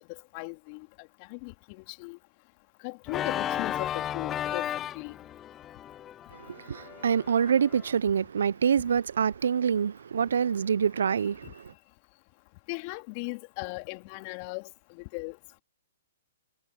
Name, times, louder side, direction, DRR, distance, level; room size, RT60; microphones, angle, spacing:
voice 1, 0.1-2.2 2.8-4.7 4.9-5.2 11.4-11.5 12.7-15.6, left 31 dB, 40° left, 2.5 m, -38 dB
Organ, 3.1-7.9, left 10 dB, 20° left, 0.5 m, -34 dB
voice 2, 6.3-11.7, right 7 dB, 70° right, 0.5 m, -26 dB
hypercardioid pair, 125°, 0 cm